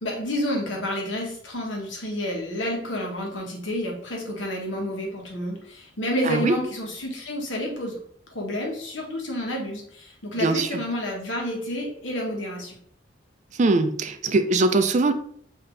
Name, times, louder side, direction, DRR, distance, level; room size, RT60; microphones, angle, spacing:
voice 1, 0.0-8.0 8.3-12.8, left 1 dB, 90° left, 0 dB, 1.4 m, -29 dB
voice 2, 6.3-6.6 10.4-10.8 13.6-15.1, right 3 dB, 40° right, 9 dB, 0.4 m, -21 dB
5.8 x 2.8 x 3.2 m, 0.62 s
head